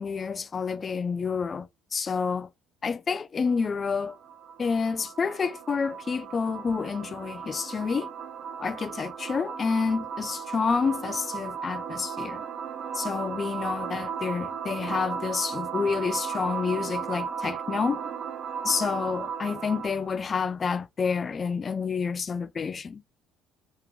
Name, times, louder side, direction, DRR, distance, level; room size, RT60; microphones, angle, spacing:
voice 1, 0.0-2.5 2.8-4.2 4.6-8.1 8.6-12.4 12.9-18.0 18.6-23.0, left 5 dB, 35° left, 0.3 m, -29 dB
sound 1, 3.5-20.1, right 7 dB, 50° right, 0.4 m, -36 dB
3.5 x 3.2 x 3.5 m
cardioid pair, 95°, 0 cm